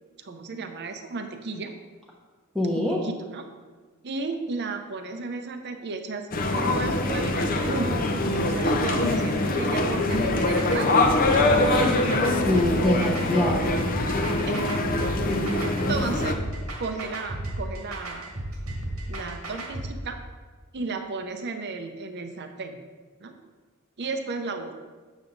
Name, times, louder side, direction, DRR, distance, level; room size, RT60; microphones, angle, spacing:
voice 1, 0.2-1.7 2.7-3.4 4.0-6.3 6.7-11.2 14.5-14.6 15.5-16.3 16.8-18.3 19.1-20.2 20.7-22.8 23.2-23.3 24.0-24.7, right 3 dB, 50° right, 6 dB, 0.7 m, -34 dB
voice 2, 2.5-3.0 11.6-12.0 12.5-13.7, left 1 dB, ahead, -5 dB, 0.9 m, -24 dB
sound 1, 6.3-16.3, left 2 dB, 40° left, 0.7 m, -24 dB
sound 2, 10.1-19.9, right 1 dB, 85° right, 1.7 m, -34 dB
7.1 x 7.1 x 3.9 m, 1.4 s
head